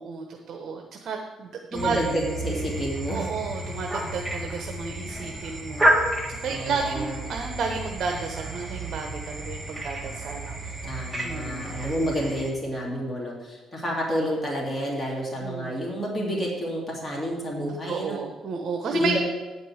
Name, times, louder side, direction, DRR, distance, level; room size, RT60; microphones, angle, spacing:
voice 1, 0.0-2.0 3.1-5.9 6.3-10.8 11.2-11.7 15.4-15.7 17.9-19.2, right 5 dB, 55° right, 2 dB, 1.0 m, -32 dB
voice 2, 1.7-3.3 6.5-7.2 10.8-18.2 18.9-19.2, equal, 20° left, -3 dB, 2.6 m, -29 dB
sound 1, 1.7-12.5, right 1 dB, 10° right, 1.6 m, -30 dB
9.5 x 5.3 x 7.7 m, 1.2 s
cardioid pair, 110°, 0 cm